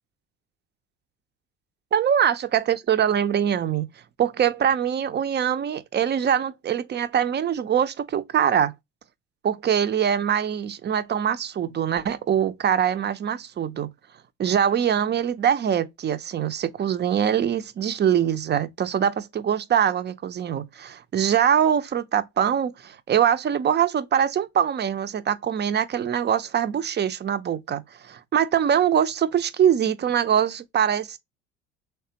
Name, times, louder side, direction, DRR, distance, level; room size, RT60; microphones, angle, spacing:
voice 1, 1.9-3.9 4.2-8.7 9.4-13.9 14.4-31.2, right 9 dB, 35° right, 0.6 m, -23 dB
3.4 x 3.2 x 2.9 m
supercardioid pair, 75°, 31 cm